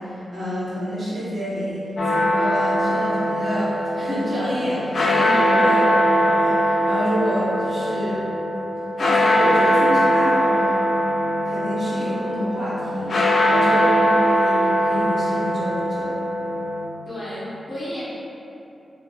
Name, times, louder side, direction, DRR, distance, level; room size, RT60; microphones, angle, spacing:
voice 1, 0.0-8.2 9.0-10.8 11.4-16.1, equal, 45° right, -10 dB, 0.9 m, -28 dB
sound 1, 2.0-16.9, equal, 50° left, 0.4 m, -21 dB
voice 2, 5.2-5.7 17.1-18.0, left 1 dB, 20° left, -12 dB, 1.2 m, -32 dB
4.0 x 2.7 x 2.4 m, 2.8 s
wide cardioid pair, 140°, 0 cm